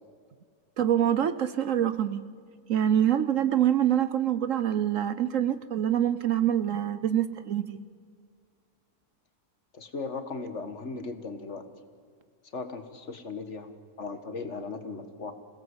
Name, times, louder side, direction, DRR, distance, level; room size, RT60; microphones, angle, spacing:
voice 1, 0.8-2.2 2.7-7.8, right 10 dB, 60° right, 13 dB, 1.1 m, -25 dB
voice 2, 9.7-11.7 12.5-13.7 14.0-15.3, left 4 dB, 50° left, 8 dB, 1.8 m, -37 dB
27.0 x 17.5 x 8.0 m, 2.1 s
omnidirectional pair, 1.6 m